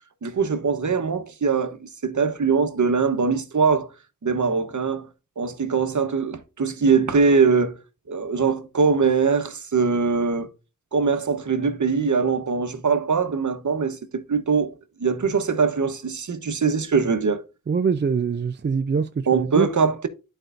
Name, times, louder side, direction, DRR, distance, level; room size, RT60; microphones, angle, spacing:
voice 1, 0.2-3.9 4.2-5.1 5.4-7.8 8.1-10.5 10.9-14.7 15.0-17.4 19.3-20.1, right 5 dB, 55° right, 1.0 m, -22 dB
voice 2, 17.7-19.7, right 5 dB, 30° right, 0.4 m, -23 dB
11.5 x 4.5 x 2.5 m
wide cardioid pair, 95°, 35 cm